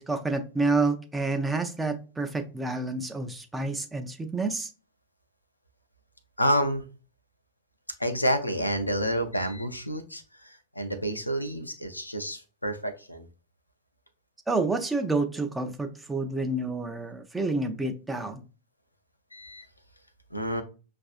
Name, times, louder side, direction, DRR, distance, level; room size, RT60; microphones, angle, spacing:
voice 1, 0.0-4.7 14.5-18.4, right 3 dB, 10° right, 0.5 m, -29 dB
voice 2, 6.4-6.8 8.0-13.3 19.3-19.7 20.3-20.6, equal, 85° left, 0.5 m, -29 dB
6.0 x 2.5 x 2.4 m
figure-of-eight pair, 90°, 0 cm